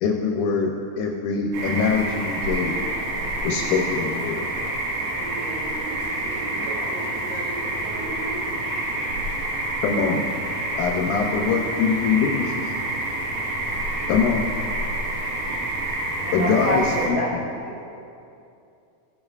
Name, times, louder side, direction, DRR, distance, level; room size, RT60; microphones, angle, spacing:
voice 1, 0.0-0.7 1.0-2.8 3.4-4.4 9.8-10.2 10.8-12.7 14.1-14.5 16.3-17.4, left 5 dB, 80° left, 0 dB, 2.1 m, -23 dB
sound 1, 1.5-17.1, right 1 dB, 60° right, 2.6 m, -28 dB
voice 2, 5.1-8.6, right 2 dB, 85° right, -4 dB, 3.2 m, -36 dB
voice 3, 16.2-18.0, equal, 10° right, -7 dB, 0.8 m, -27 dB
16.0 x 8.0 x 2.4 m, 2.6 s
omnidirectional pair, 3.6 m